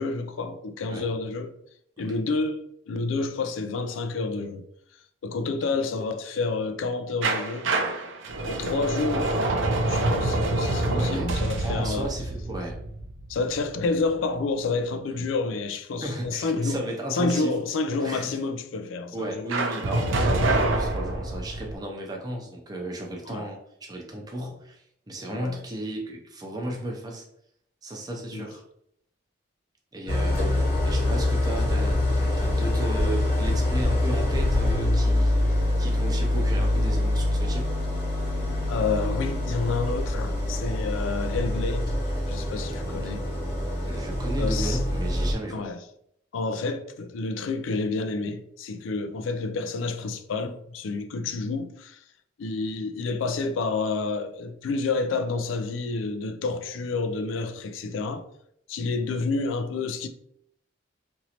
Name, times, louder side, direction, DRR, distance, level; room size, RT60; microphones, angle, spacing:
voice 1, 0.0-1.5 2.0-4.6 5.2-7.7 8.4-9.4 9.9-12.1 13.3-16.8 17.1-19.5 23.3-23.5 25.3-25.6 28.3-28.5 38.7-42.0 42.3-43.3 44.4-44.8 45.5-45.8 46.3-52.0 52.4-58.2 58.7-60.1, left 3 dB, 85° left, 0.4 m, -29 dB
sound 1, 7.2-14.0 19.5-21.7, right 2 dB, 80° right, 0.5 m, -26 dB
voice 2, 10.8-11.3 11.6-12.8 15.1-15.3 16.0-17.6 18.0-18.4 19.1-27.2 27.8-28.6 29.9-37.7 42.9-43.0 43.8-45.7, right 1 dB, 20° right, 0.5 m, -34 dB
Idling, 30.1-45.3, left 1 dB, 50° left, 1.1 m, -25 dB
3.0 x 2.6 x 2.8 m
head